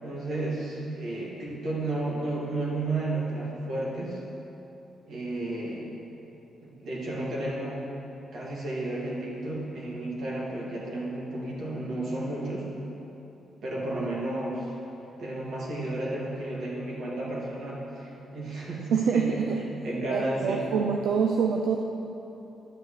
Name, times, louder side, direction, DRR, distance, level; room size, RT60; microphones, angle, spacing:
voice 1, 0.0-4.2 5.1-5.9 6.6-7.9 8.3-12.7 13.6-14.7 15.2-19.4 19.8-20.7, right 2 dB, 65° right, -5 dB, 2.1 m, -32 dB
voice 2, 18.9-19.6 20.1-21.8, right 6 dB, 85° right, 1 dB, 0.5 m, -25 dB
11.0 x 8.2 x 3.2 m, 3.0 s
cardioid pair, 110°, 0 cm